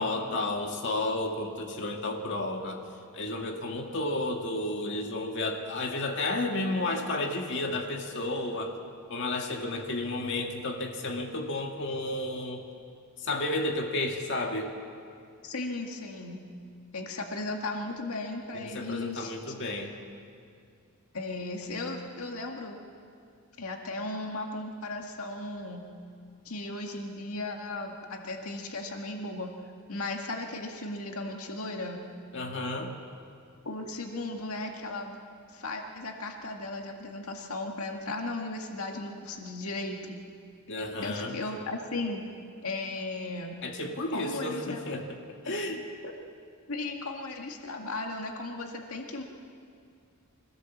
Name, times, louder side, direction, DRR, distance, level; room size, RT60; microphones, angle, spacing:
voice 1, 0.0-2.8 3.1-8.7 9.1-12.6 13.2-14.7 18.5-20.0 32.3-32.9 40.7-41.4 43.6-45.0 45.4-45.8, left 2 dB, 55° left, 2 dB, 1.9 m, -32 dB
voice 2, 15.4-16.4 16.9-19.3 21.1-22.8 23.6-25.8 26.5-29.5 29.9-32.0 33.6-35.2 35.5-40.2 41.0-42.2 42.6-43.6 44.1-44.8 45.5-45.6 46.0-46.1 46.7-49.2, left 2 dB, 80° left, 2 dB, 1.9 m, -36 dB
24.5 x 16.5 x 7.3 m, 2.3 s
head